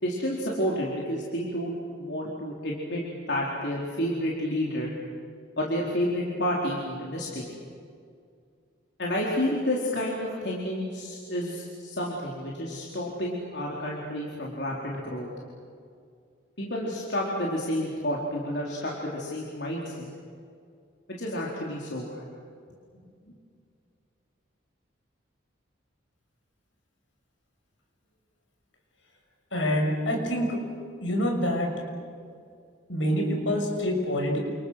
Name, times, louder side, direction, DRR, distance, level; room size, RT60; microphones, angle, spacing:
voice 1, 0.0-4.9 5.6-7.5 9.0-15.3 16.6-20.1 21.2-22.2, equal, 60° left, -3 dB, 4.2 m, -30 dB
voice 2, 29.5-30.6 31.0-31.8 32.9-34.4, equal, 75° left, 2 dB, 6.8 m, -26 dB
30.0 x 28.5 x 6.6 m, 2.3 s
head